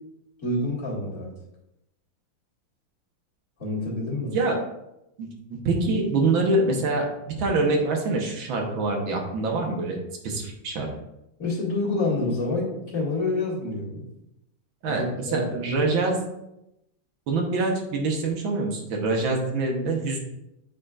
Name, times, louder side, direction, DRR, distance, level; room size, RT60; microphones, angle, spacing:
voice 1, 0.4-1.3 3.6-4.4 11.4-14.0 14.8-15.8, left 2 dB, 45° left, -7 dB, 2.5 m, -28 dB
voice 2, 5.2-10.0 10.2-10.9 14.8-16.2 17.3-20.2, right 3 dB, 90° right, 1 dB, 1.9 m, -25 dB
8.6 x 5.3 x 2.5 m, 0.87 s
omnidirectional pair, 2.1 m